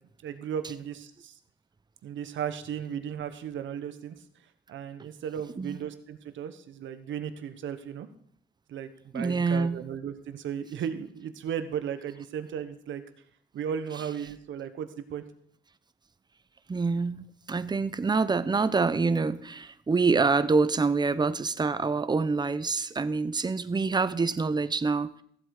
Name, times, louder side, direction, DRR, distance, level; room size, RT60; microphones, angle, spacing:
voice 1, 0.2-1.3 2.0-4.2 4.7-8.1 8.7-13.0 13.5-15.2, right 8 dB, 70° right, 10 dB, 1.3 m, -35 dB
voice 2, 9.1-9.8 16.7-25.2, right 4 dB, 20° right, 14 dB, 0.7 m, -26 dB
15.0 x 7.9 x 4.9 m, 0.65 s
cardioid pair, 90°, 20 cm